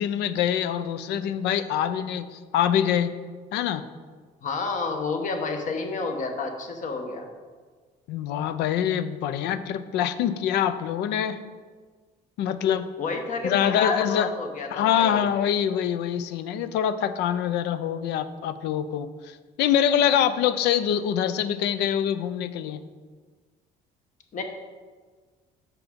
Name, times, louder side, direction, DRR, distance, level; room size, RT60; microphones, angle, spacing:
voice 1, 0.0-3.2 3.5-3.8 8.1-11.4 12.4-12.9 13.4-14.3 14.7-22.8, left 9 dB, 85° left, 13 dB, 0.5 m, -25 dB
voice 2, 4.4-7.3 13.0-15.3 24.3-24.4, left 4 dB, 50° left, 4 dB, 1.1 m, -30 dB
6.0 x 5.7 x 5.2 m, 1.5 s
cardioid pair, 110°, 17 cm